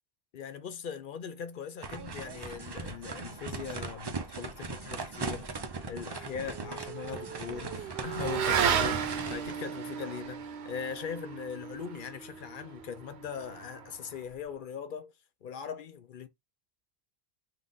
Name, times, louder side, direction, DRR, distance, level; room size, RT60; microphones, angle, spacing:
voice 1, 0.3-5.6 5.9-15.1 15.4-16.3, left 7 dB, 60° left, 0.6 m, -40 dB
sound 1, 1.8-9.6, right 3 dB, 40° right, 0.4 m, -39 dB
Motorcycle / Accelerating revving vroom, 5.6-14.3, right 7 dB, 75° right, 0.9 m, -34 dB
3.9 x 2.4 x 3.7 m
omnidirectional pair, 1.1 m